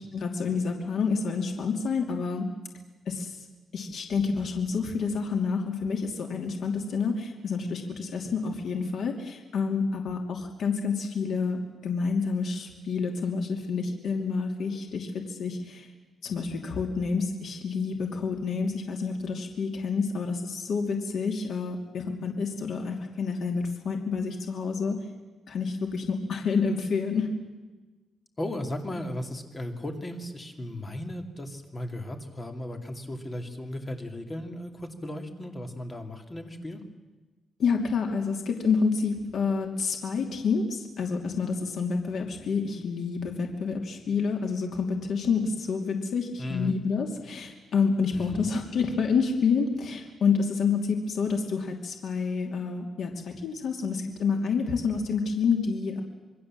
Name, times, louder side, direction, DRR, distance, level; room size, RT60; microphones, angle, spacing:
voice 1, 0.1-2.4 3.1-3.3 3.7-15.9 16.2-25.0 25.5-27.3 37.6-56.0, left 5 dB, 65° left, 3 dB, 2.7 m, -28 dB
voice 2, 28.4-36.8 46.4-46.8 48.1-48.5, left 1 dB, 20° left, 5 dB, 2.5 m, -36 dB
27.0 x 21.5 x 7.5 m, 1.2 s
wide cardioid pair, 165°, 0 cm